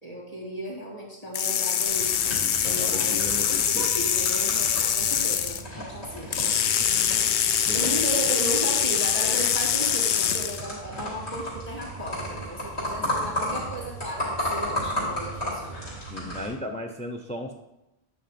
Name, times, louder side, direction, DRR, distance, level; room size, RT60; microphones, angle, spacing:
voice 1, 0.0-6.6 7.7-15.9, right 1 dB, 35° left, -1 dB, 2.4 m, -35 dB
sound 1, 1.3-5.6 6.3-10.6, left 8 dB, 70° left, 0.8 m, -24 dB
sound 2, 1.9-16.5, equal, 90° left, 3.5 m, -34 dB
voice 2, 2.3-3.9 7.3-7.8 13.0-13.3 16.1-17.5, left 1 dB, 10° left, 5 dB, 0.3 m, -36 dB
9.4 x 5.8 x 4.2 m, 0.91 s
omnidirectional pair, 1.1 m